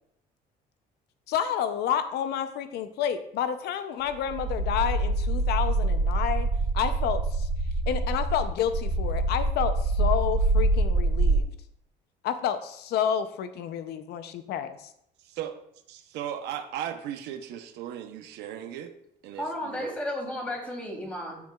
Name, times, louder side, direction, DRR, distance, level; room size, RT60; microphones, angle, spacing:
voice 1, 1.3-6.5 6.7-7.5 7.9-11.5 12.2-14.9, left 9 dB, 75° left, 9 dB, 0.6 m, -29 dB
sound 1, 4.1-11.4, right 2 dB, 30° right, 2.4 m, -25 dB
voice 2, 15.2-15.5 15.9-18.9 19.2-19.9, right 10 dB, 85° right, 7 dB, 0.7 m, -36 dB
voice 3, 19.3-21.4, left 1 dB, 5° left, -3 dB, 3.0 m, -33 dB
13.5 x 4.7 x 2.3 m, 0.73 s
cardioid pair, 110°, 17 cm